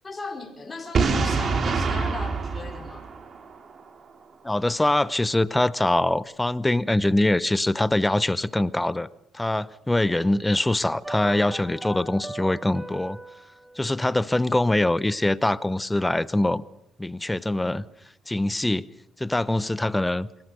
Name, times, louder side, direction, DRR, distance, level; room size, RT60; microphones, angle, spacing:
voice 1, 0.0-3.1, left 3 dB, 25° left, 4.6 m, -36 dB
Boom, 0.9-3.8, right 4 dB, 50° right, 2.9 m, -25 dB
voice 2, 4.4-9.1 9.3-13.2 13.8-16.6 17.0-17.8 18.3-18.9 19.2-20.3, left 1 dB, 10° left, 0.8 m, -23 dB
sound 1, 11.0-15.3 15.6-15.7, right 2 dB, 15° right, 2.4 m, -40 dB
24.5 x 18.0 x 6.8 m
cardioid pair, 90°, 0 cm